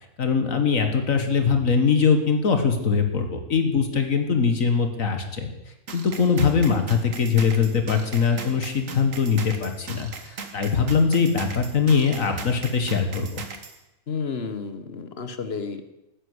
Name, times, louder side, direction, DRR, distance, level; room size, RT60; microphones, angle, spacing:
voice 1, 0.2-5.5 5.9-13.3, left 5 dB, 65° left, 6 dB, 1.8 m, -22 dB
sound 1, 5.9-13.8, right 4 dB, 60° right, 1.8 m, -38 dB
voice 2, 14.1-15.8, left 5 dB, 45° left, 10 dB, 1.3 m, -31 dB
13.0 x 9.9 x 8.1 m, 0.93 s
omnidirectional pair, 1.5 m